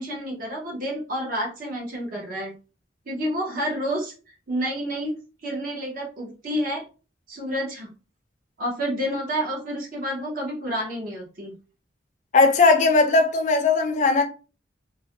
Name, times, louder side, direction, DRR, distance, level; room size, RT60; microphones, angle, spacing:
voice 1, 0.0-2.5 3.1-6.8 7.3-7.9 8.6-11.5, equal, 50° right, 0.7 m, -29 dB
voice 2, 12.3-14.2, left 3 dB, 40° left, 0.4 m, -18 dB
2.3 x 2.0 x 2.8 m
head